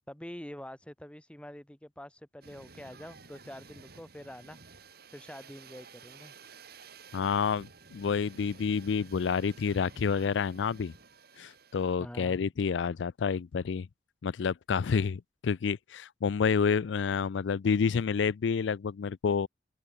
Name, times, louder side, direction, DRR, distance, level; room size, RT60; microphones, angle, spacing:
voice 1, 0.1-4.6 5.1-6.3 12.0-12.4, equal, 5° left, 1.1 m, -46 dB
sound 1, 2.4-12.0, right 4 dB, 60° right, 3.9 m, -53 dB
voice 2, 7.1-10.9 11.4-13.9 14.2-19.5, left 6 dB, 85° left, 0.4 m, -29 dB
open air
head